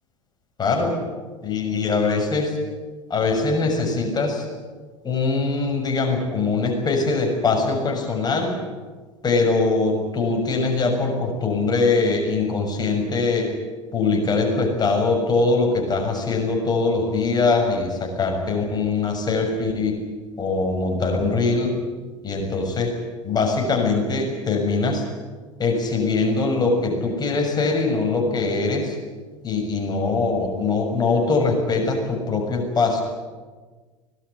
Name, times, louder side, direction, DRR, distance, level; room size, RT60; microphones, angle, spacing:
voice 1, 0.6-1.0 1.4-2.6 3.1-4.5 5.0-8.5 9.2-13.5 13.9-20.0 20.4-21.8 22.2-23.0 23.2-25.0 25.6-29.0 29.4-33.0, left 3 dB, 25° left, 2 dB, 6.7 m, -22 dB
24.5 x 19.5 x 9.8 m, 1.4 s
figure-of-eight pair, 75°, 17 cm